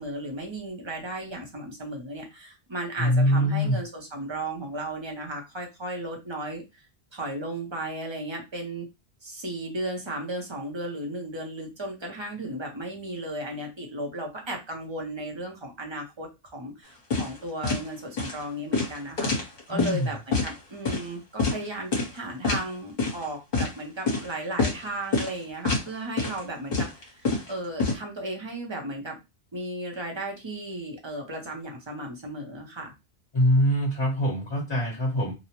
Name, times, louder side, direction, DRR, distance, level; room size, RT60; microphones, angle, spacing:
voice 1, 0.0-6.8 7.1-8.9 9.2-29.2 29.5-32.9, right 1 dB, 30° right, 1 dB, 0.6 m, -35 dB
voice 2, 3.0-3.8 19.7-20.1 33.3-35.3, equal, 30° left, -4 dB, 0.8 m, -23 dB
sound 1, 17.1-17.4 17.6-17.8 18.2-18.4 18.7-20.0 20.3-20.5 20.8-21.0 21.4-21.6 21.9-22.2 22.4-22.6 23.0-23.2 23.5-23.7 24.1-24.2 24.6-24.8 25.1-25.3 25.6-25.9 26.2-26.4 26.7-27.9, left 3 dB, 50° left, 0.9 m, -26 dB
2.6 x 2.0 x 2.9 m, 0.24 s
omnidirectional pair, 1.1 m